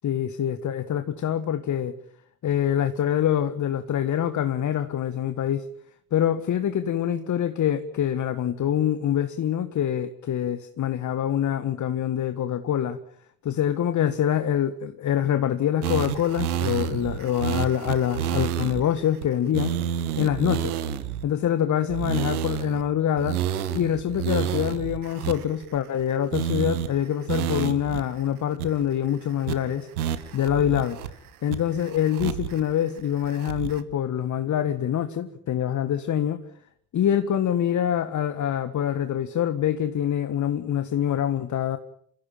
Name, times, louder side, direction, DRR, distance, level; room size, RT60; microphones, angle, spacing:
voice 1, 0.0-1.9 2.4-5.7 6.1-13.0 13.4-20.8 21.2-23.4 23.7-29.9 30.3-31.0 31.4-36.4 36.9-41.8, left 10 dB, 40° left, 1.6 m, -25 dB
sound 1, 15.8-18.8 19.2-19.3 19.5-21.2 21.9-22.8 23.2-26.0 26.3-26.9 27.3-28.0 28.3-28.4 28.6-29.1 29.5-29.6 30.0-31.1 31.5-32.6 33.0-33.8, right 10 dB, 75° right, 1.9 m, -29 dB
29.5 x 16.0 x 9.0 m
figure-of-eight pair, 55°, 45 cm